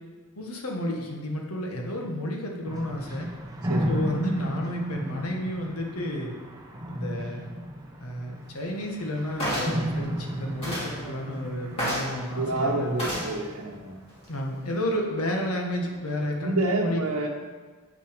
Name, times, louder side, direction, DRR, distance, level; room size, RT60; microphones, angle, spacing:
voice 1, 0.4-3.3 3.9-6.3 6.9-7.5 8.0-13.2 14.3-17.0, equal, 85° left, 0 dB, 1.4 m, -31 dB
sound 1, 2.6-14.8, equal, 15° right, 0.7 m, -34 dB
sound 2, 9.4-9.8 10.6-10.9 11.8-12.1 13.0-13.3 14.1-14.2, equal, 25° left, 2.7 m, -29 dB
voice 2, 12.4-14.0 16.4-17.3, right 2 dB, 90° right, -2 dB, 0.9 m, -28 dB
8.7 x 5.8 x 5.1 m, 1.5 s
head